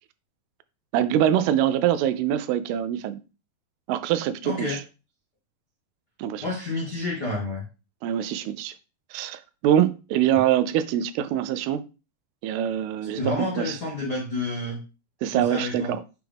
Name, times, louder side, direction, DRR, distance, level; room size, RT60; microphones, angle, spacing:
voice 1, 0.9-3.2 3.9-4.8 6.2-6.4 8.0-8.7 9.1-11.8 12.4-13.2 13.6-13.8 15.2-16.0, right 10 dB, 85° right, 2.5 m, -24 dB
voice 2, 4.4-4.8 6.4-7.6 13.1-14.8 15.3-15.9, left 2 dB, 80° left, 0.9 m, -29 dB
9.5 x 3.5 x 3.5 m
omnidirectional pair, 4.6 m